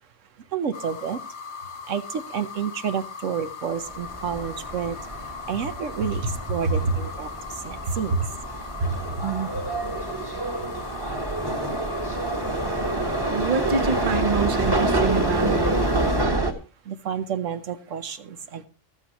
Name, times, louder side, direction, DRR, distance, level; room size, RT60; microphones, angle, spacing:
voice 1, 0.5-1.2 1.9-5.0 5.5-8.1 16.9-18.7, right 7 dB, 75° right, 10 dB, 1.2 m, -30 dB
sound 1, 0.7-16.3, left 6 dB, 65° left, 1.2 m, -39 dB
sound 2, 3.9-16.5, right 2 dB, 20° right, 1.3 m, -27 dB
voice 2, 7.9-8.2 8.8-9.6 13.3-15.7, right 4 dB, 45° right, 10 dB, 1.1 m, -26 dB
14.0 x 13.0 x 3.0 m, 0.34 s
omnidirectional pair, 1.3 m